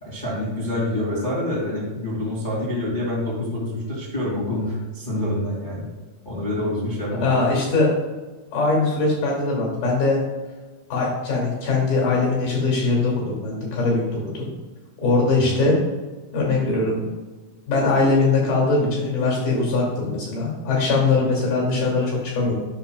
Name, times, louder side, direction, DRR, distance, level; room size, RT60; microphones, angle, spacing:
voice 1, 0.0-5.8 6.2-7.3, left 1 dB, 30° left, -7 dB, 0.8 m, -26 dB
voice 2, 7.2-7.9 8.5-10.2 10.9-14.5 15.0-15.8 16.3-17.0 17.7-22.5, left 3 dB, 60° left, -3 dB, 3.8 m, -21 dB
9.8 x 6.1 x 2.3 m, 1.3 s
omnidirectional pair, 5.0 m